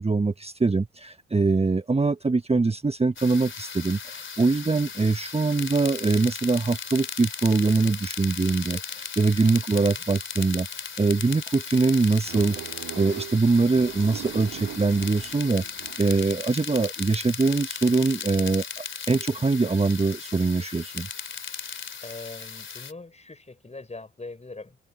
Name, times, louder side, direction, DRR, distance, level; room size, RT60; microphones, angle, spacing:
voice 1, 0.0-10.7 11.0-21.1, right 3 dB, 20° right, 1.5 m, -23 dB
sound 1, 3.2-22.9, left 6 dB, 40° left, 3.3 m, -37 dB
voice 2, 9.7-10.0 22.0-24.8, left 3 dB, 20° left, 6.9 m, -42 dB
sound 2, 12.2-16.3, right 13 dB, 60° right, 1.9 m, -40 dB
figure-of-eight pair, 45°, 31 cm